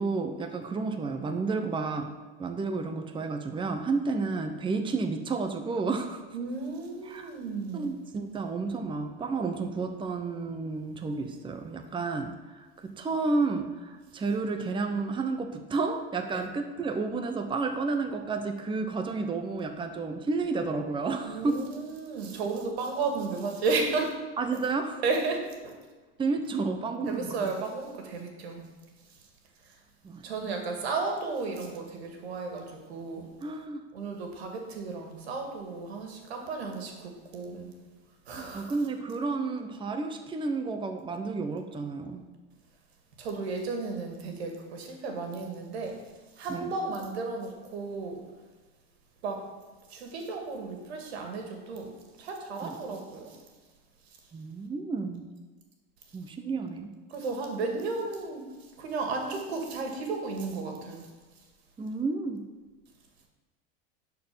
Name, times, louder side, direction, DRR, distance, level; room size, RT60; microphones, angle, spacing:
voice 1, 0.0-2.1 2.4-6.2 7.0-7.3 7.7-21.6 24.4-25.0 26.2-27.5 30.0-30.5 33.4-33.8 38.3-42.2 46.5-46.7 52.6-52.7 54.3-55.2 56.1-56.9 61.8-62.4, right 4 dB, 15° right, 6 dB, 0.8 m, -31 dB
voice 2, 6.3-7.9 16.3-16.4 21.2-24.1 24.5-24.6 25.0-25.8 27.1-28.7 30.2-33.3 33.9-37.7 38.3-38.7 43.2-46.0 46.4-48.2 49.2-49.5 49.9-51.9 52.2-53.4 57.1-58.4 58.8-61.1, right 4 dB, 90° right, 3 dB, 2.1 m, -33 dB
11.0 x 4.6 x 6.7 m, 1.3 s
supercardioid pair, 115°, 31 cm